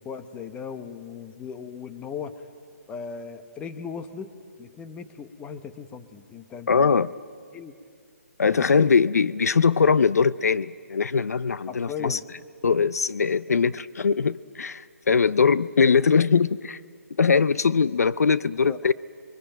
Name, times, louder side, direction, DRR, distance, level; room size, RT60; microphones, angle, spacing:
voice 1, 0.0-2.4 2.9-7.0 7.5-7.8 8.4-8.9 11.7-12.2 18.7-18.9, left 6 dB, 15° left, 9 dB, 1.1 m, -37 dB
voice 2, 6.7-7.1 8.4-12.2 12.6-16.8 17.2-18.9, left 5 dB, 80° left, 17 dB, 0.6 m, -21 dB
27.5 x 22.5 x 9.1 m, 2.1 s
hypercardioid pair, 145°, 8 cm